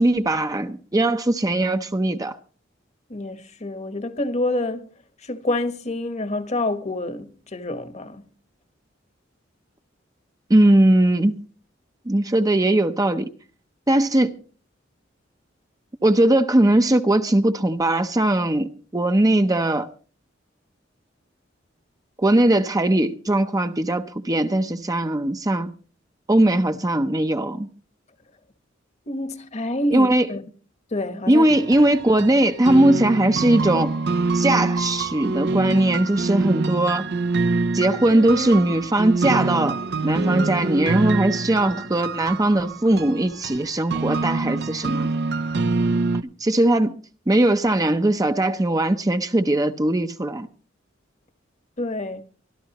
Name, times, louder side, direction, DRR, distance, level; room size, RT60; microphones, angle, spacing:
voice 1, 0.0-2.4 10.5-11.4 12.1-13.3 13.9-14.3 16.0-19.9 22.2-25.7 26.3-27.7 29.9-30.3 31.3-33.9 34.3-37.1 37.7-45.1 46.4-46.9 47.3-50.5, right 1 dB, 20° right, 0.7 m, -19 dB
voice 2, 3.1-4.9 5.2-8.2 29.1-30.4 30.9-31.5 51.8-52.2, left 1 dB, 35° left, 1.2 m, -27 dB
sound 1, 31.5-46.2, right 3 dB, 60° right, 0.6 m, -25 dB
24.5 x 12.5 x 3.0 m
head